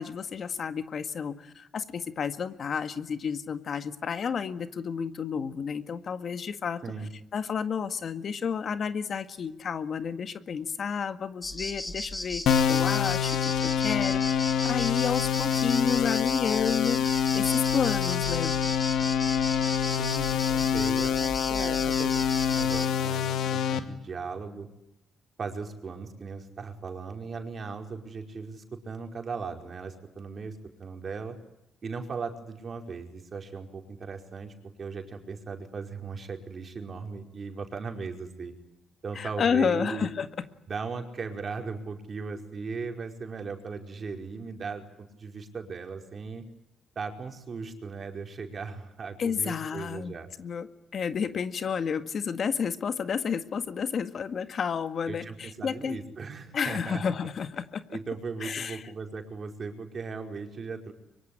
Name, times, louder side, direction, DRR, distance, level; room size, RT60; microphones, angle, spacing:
voice 1, 0.0-6.8 7.3-18.5 39.2-40.5 49.2-50.7 50.9-56.0 56.5-58.0 58.4-58.9, left 6 dB, 55° left, 10 dB, 1.9 m, -31 dB
sound 1, 11.4-22.9, left 1 dB, 15° left, 3.5 m, -36 dB
sound 2, 12.5-23.8, left 8 dB, 75° left, 2.4 m, -26 dB
voice 2, 19.9-22.2 22.5-24.7 25.4-31.4 31.8-38.5 39.0-40.1 40.7-46.4 46.9-50.3 55.1-57.0 57.9-60.9, right 4 dB, 45° right, 5 dB, 5.0 m, -38 dB
24.5 x 23.5 x 9.9 m, 0.82 s
cardioid pair, 90°, 0 cm